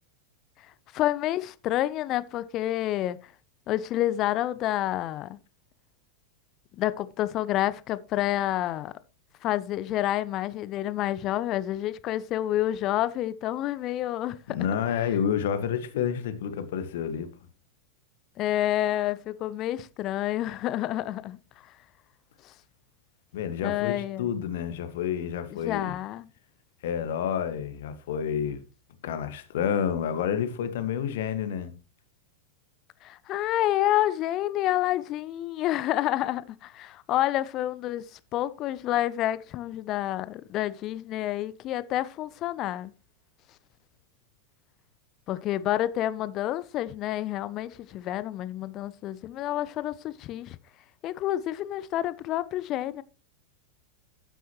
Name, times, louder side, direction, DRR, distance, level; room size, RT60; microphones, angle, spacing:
voice 1, 0.9-3.2 3.7-5.4 6.7-8.9 9.4-14.6 18.4-21.4 22.4-22.5 23.6-24.3 25.5-26.3 33.0-42.9 45.3-50.6 51.0-53.0, left 13 dB, 35° left, 0.7 m, -29 dB
voice 2, 14.5-17.3 23.3-25.9 26.8-28.6 29.0-31.7, left 8 dB, 55° left, 1.6 m, -29 dB
12.5 x 9.2 x 3.0 m
figure-of-eight pair, 90°, 0 cm